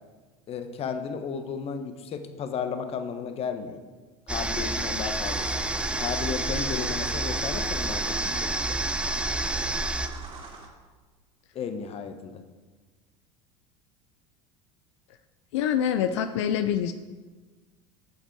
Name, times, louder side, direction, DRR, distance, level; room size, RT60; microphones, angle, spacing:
voice 1, 0.5-3.8 4.3-5.4 6.0-8.8 11.5-12.4, left 6 dB, 40° left, 8 dB, 1.0 m, -34 dB
sound 1, 4.3-10.1, right 2 dB, 5° right, 0.7 m, -29 dB
sound 2, 5.2-10.7, right 3 dB, 40° right, 2.7 m, -42 dB
voice 2, 15.5-16.9, left 9 dB, 80° left, 10 dB, 0.5 m, -25 dB
9.2 x 6.8 x 4.6 m, 1.3 s
hypercardioid pair, 90°, 15 cm